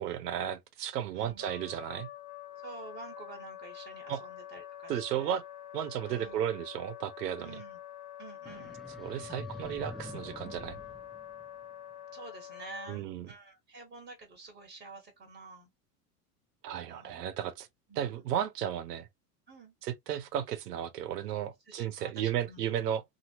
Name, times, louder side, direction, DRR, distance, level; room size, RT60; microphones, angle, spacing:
voice 1, 0.0-2.1 4.1-4.2 4.9-5.4 5.7-7.6 9.0-10.8 12.9-13.3 16.6-17.7 17.9-19.1 19.8-23.0, right 10 dB, 80° right, 0.9 m, -34 dB
voice 2, 1.1-1.4 2.5-5.4 6.0-6.4 7.4-7.8 8.2-8.8 12.1-15.7 16.8-17.1 17.9-18.2 19.5-19.7 21.6-22.6, right 3 dB, 25° right, 1.5 m, -49 dB
Wind instrument woodwind instrument, 1.4-13.0, left 11 dB, 60° left, 1.3 m, -46 dB
sound 1, 8.4-11.9, equal, ahead, 0.5 m, -46 dB
2.8 x 2.8 x 2.9 m
hypercardioid pair, 100°, 47 cm